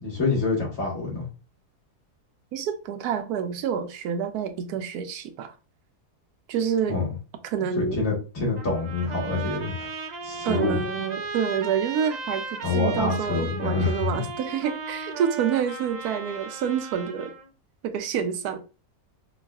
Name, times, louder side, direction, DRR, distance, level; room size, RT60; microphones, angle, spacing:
voice 1, 0.0-1.2 6.9-7.0 7.8-9.9 10.2-10.8 12.6-14.1, left 3 dB, 60° left, 1.9 m, -26 dB
voice 2, 2.5-5.5 6.5-7.0 7.4-8.0 10.4-17.3 17.8-18.6, right 8 dB, 85° right, 1.1 m, -28 dB
Trumpet, 8.6-17.5, right 4 dB, 60° right, 0.4 m, -36 dB
5.4 x 2.3 x 2.2 m
omnidirectional pair, 1.6 m